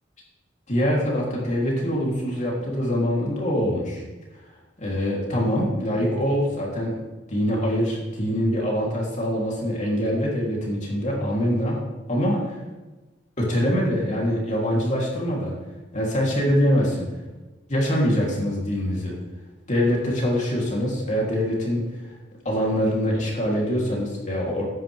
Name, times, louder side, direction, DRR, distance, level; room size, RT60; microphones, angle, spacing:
voice 1, 0.7-4.0 4.8-6.9 7.3-11.8 12.1-12.5 13.4-15.5 15.9-17.1 17.7-19.1 19.7-21.8 22.4-24.6, equal, 40° left, -3 dB, 3.3 m, -24 dB
15.5 x 10.0 x 3.5 m, 1.2 s
head